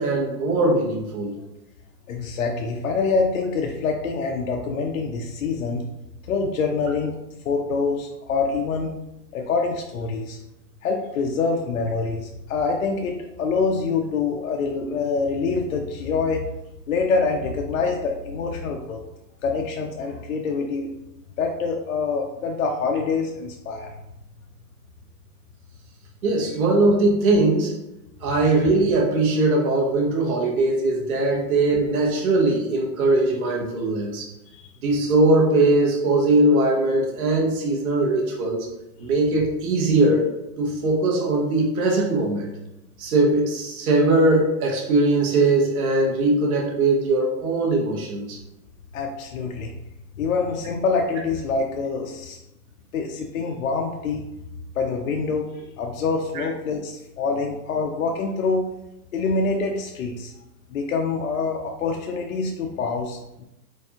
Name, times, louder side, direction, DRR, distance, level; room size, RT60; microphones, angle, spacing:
voice 1, 0.0-1.3 26.2-27.7 28.2-34.2 34.8-38.7 39.0-40.3 40.6-42.5 43.0-48.4 56.3-56.5, right 2 dB, 60° right, -1 dB, 1.0 m, -20 dB
voice 2, 2.1-5.8 6.3-7.2 7.4-8.9 9.3-10.4 10.8-16.5 16.9-19.0 19.4-20.9 21.4-23.9 34.5-34.6 48.9-49.7 50.2-52.4 52.9-54.2 54.8-58.7 59.1-60.3 60.7-63.5, left 4 dB, 60° left, 2 dB, 0.5 m, -25 dB
4.6 x 2.5 x 2.8 m, 0.92 s
hypercardioid pair, 165°, 49 cm